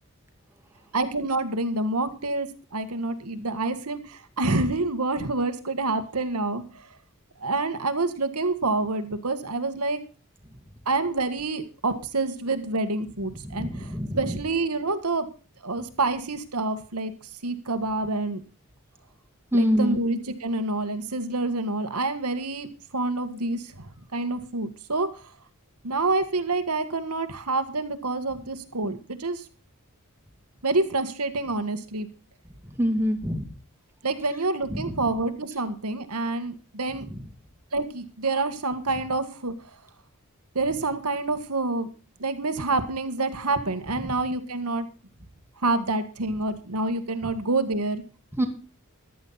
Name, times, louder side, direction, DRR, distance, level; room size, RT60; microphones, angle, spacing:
voice 1, 0.9-6.9 7.4-10.0 10.9-15.3 15.6-17.1 17.4-18.4 19.5-22.7 22.9-25.2 25.8-29.4 30.6-32.1 34.0-37.1 37.7-39.5 40.6-41.9 42.2-44.9 45.6-48.0, right 2 dB, 90° right, 9 dB, 1.8 m, -27 dB
voice 2, 13.4-14.4 19.5-20.0 32.8-33.5 34.7-34.9 48.4-48.5, equal, 10° right, 3 dB, 2.3 m, -25 dB
14.5 x 11.5 x 4.2 m, 0.36 s
head